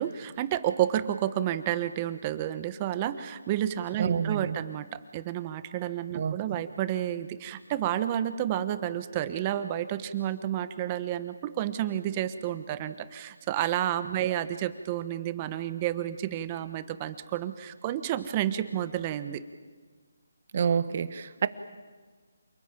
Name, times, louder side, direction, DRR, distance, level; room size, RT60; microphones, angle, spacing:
voice 1, 0.0-19.4, right 11 dB, 25° right, 12 dB, 1.1 m, -30 dB
voice 2, 4.0-4.6 6.1-6.6 20.5-21.5, right 7 dB, 45° right, 13 dB, 1.4 m, -28 dB
28.0 x 20.0 x 9.0 m, 1.4 s
figure-of-eight pair, 160°, 0 cm